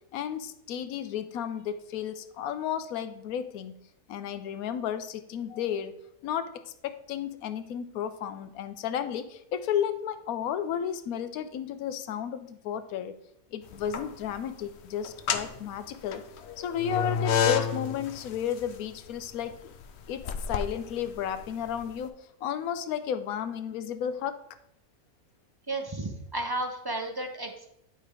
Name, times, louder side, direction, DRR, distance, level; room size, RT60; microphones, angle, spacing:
voice 1, 0.1-3.7 4.1-5.9 6.2-13.2 13.5-16.2 16.6-19.7 20.1-24.4, left 9 dB, 85° left, 12 dB, 1.1 m, -33 dB
sound 1, 13.7-14.4 15.0-21.9, left 7 dB, 60° left, 0.8 m, -31 dB
voice 2, 25.7-27.7, right 2 dB, 40° right, 4 dB, 0.3 m, -33 dB
10.0 x 3.4 x 4.8 m, 0.77 s
omnidirectional pair, 1.5 m